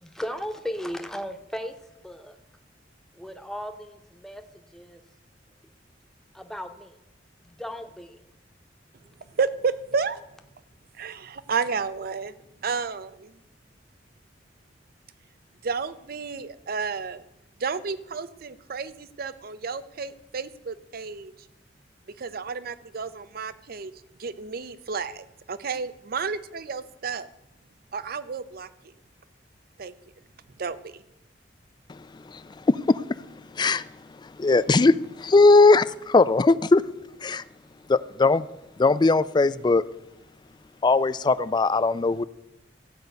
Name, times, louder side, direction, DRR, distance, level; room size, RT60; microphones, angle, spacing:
voice 1, 0.0-1.8 2.0-2.4 3.1-5.0 6.3-7.0 7.4-8.2 9.0-9.1, equal, 5° left, 0.8 m, -36 dB
voice 2, 9.4-10.2 11.0-12.3 12.6-13.3 15.6-17.2 17.6-21.3 22.2-23.9 24.2-27.3 27.9-28.7 29.8-29.9 30.6-31.0, right 5 dB, 55° right, 0.6 m, -31 dB
voice 3, 32.7-33.0 33.6-33.8 34.4-36.8 37.2-37.4 37.9-38.4 38.8-39.8 40.8-42.2, left 3 dB, 25° left, 0.4 m, -19 dB
14.0 x 5.2 x 8.0 m
head